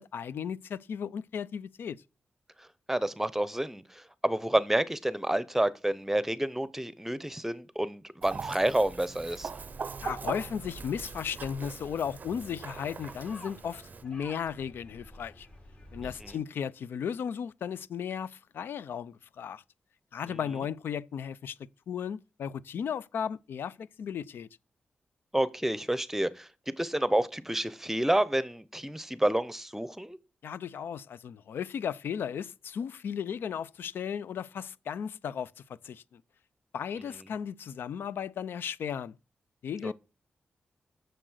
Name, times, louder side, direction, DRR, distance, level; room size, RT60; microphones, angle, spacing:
voice 1, 0.0-2.0 10.0-15.5 15.9-19.6 20.1-21.6 21.9-24.5 30.4-35.5 35.8-36.2 36.7-39.2 39.6-39.9, left 8 dB, 85° left, 0.4 m, -35 dB
voice 2, 2.6-9.5 16.0-16.4 20.3-20.4 25.3-30.2 39.8-39.9, right 1 dB, 10° right, 0.8 m, -29 dB
Chicken rooster, 8.2-14.0, right 5 dB, 50° right, 0.5 m, -41 dB
sound 1, 8.7-16.4, left 1 dB, 35° left, 2.3 m, -51 dB
7.7 x 6.6 x 6.4 m
cardioid pair, 70°, 4 cm